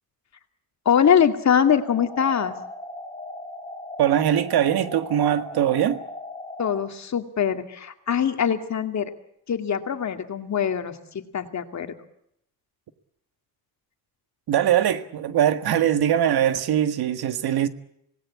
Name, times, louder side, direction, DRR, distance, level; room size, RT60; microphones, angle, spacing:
voice 1, 0.9-2.5 6.6-9.1 9.5-11.9, left 8 dB, 45° left, 2.4 m, -23 dB
sound 1, 1.8-6.8, left 2 dB, 15° left, 4.0 m, -38 dB
voice 2, 4.0-6.0 14.5-17.7, right 10 dB, 80° right, 1.8 m, -21 dB
26.5 x 19.0 x 8.5 m
cardioid pair, 140°, 37 cm